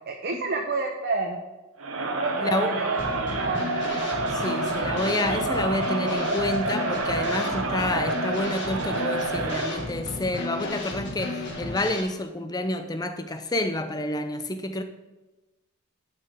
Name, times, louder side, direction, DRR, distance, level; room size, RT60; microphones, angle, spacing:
voice 1, 0.1-1.4 2.2-3.7, right 3 dB, 45° right, 0.7 m, -29 dB
Crowd, 1.8-9.9, right 3 dB, 70° right, 1.0 m, -28 dB
voice 2, 2.4-2.8 4.3-14.8, left 1 dB, 20° left, 0.5 m, -29 dB
Drum kit / Snare drum, 3.0-12.0, left 2 dB, 55° left, 1.7 m, -34 dB
11.5 x 5.6 x 3.5 m
head